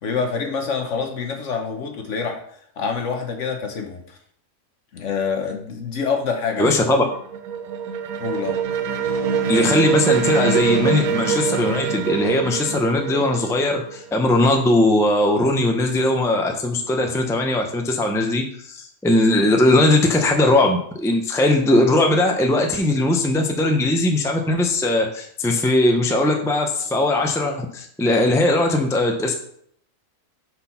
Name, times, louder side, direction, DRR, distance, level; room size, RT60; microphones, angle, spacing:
voice 1, 0.0-2.4 2.8-4.2 4.9-6.7 8.2-8.6, left 5 dB, 60° left, 4 dB, 1.3 m, -26 dB
voice 2, 6.6-7.0 9.5-29.3, left 1 dB, 5° left, 2 dB, 0.6 m, -19 dB
sound 1, 6.9-14.5, right 6 dB, 80° right, 1.2 m, -24 dB
6.0 x 4.3 x 5.7 m, 0.65 s
omnidirectional pair, 1.5 m